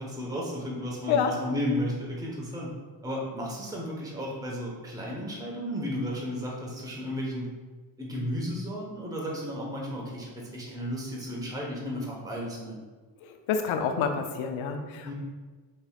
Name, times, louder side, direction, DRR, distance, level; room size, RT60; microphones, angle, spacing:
voice 1, 0.0-2.7 3.0-7.5 8.0-12.8 15.0-15.1, equal, 10° right, -3 dB, 1.0 m, -33 dB
voice 2, 13.5-15.1, left 6 dB, 85° left, 6 dB, 0.6 m, -27 dB
5.1 x 3.1 x 2.4 m, 1.3 s
supercardioid pair, 55°, 48 cm